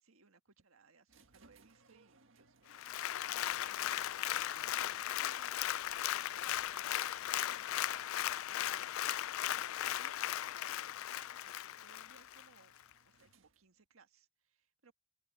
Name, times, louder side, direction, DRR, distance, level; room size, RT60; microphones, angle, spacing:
voice 1, 0.0-7.7 8.5-8.9 9.8-12.8 13.0-14.9, right 4 dB, 85° right, 1.6 m, -66 dB
sound 1, 1.1-13.9, right 3 dB, 65° right, 1.7 m, -70 dB
Applause, 2.7-12.5 12.9-13.0, left 12 dB, 80° left, 0.4 m, -37 dB
open air
head